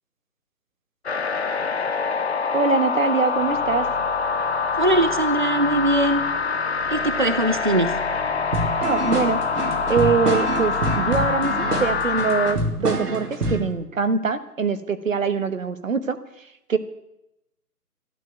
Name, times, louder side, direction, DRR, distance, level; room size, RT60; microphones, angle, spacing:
sound 1, 1.1-12.6, left 5 dB, 45° left, 0.9 m, -25 dB
voice 1, 2.5-3.9 8.8-9.4 9.9-16.2 16.7-16.8, right 5 dB, 55° right, 11 dB, 1.4 m, -23 dB
sound 2, 3.3-13.2, left 1 dB, 15° left, 2.1 m, -39 dB
voice 2, 4.8-6.2 6.9-7.9, right 1 dB, 30° right, 10 dB, 0.6 m, -21 dB
sound 3, 8.5-13.7, right 2 dB, 75° right, 3.2 m, -26 dB
12.5 x 10.0 x 9.1 m, 0.87 s
hypercardioid pair, 170°, 47 cm